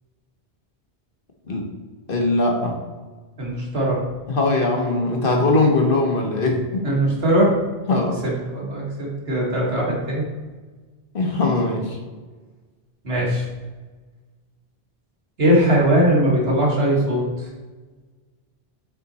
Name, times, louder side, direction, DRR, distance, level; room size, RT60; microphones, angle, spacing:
voice 1, 2.1-2.8 4.3-7.0 7.9-8.2 11.1-12.0, left 2 dB, 60° left, 1 dB, 1.4 m, -21 dB
voice 2, 3.4-4.0 6.8-7.5 8.2-10.2 13.0-13.5 15.4-17.5, right 1 dB, 75° right, -3 dB, 2.0 m, -20 dB
7.6 x 4.2 x 4.0 m, 1.3 s
omnidirectional pair, 1.0 m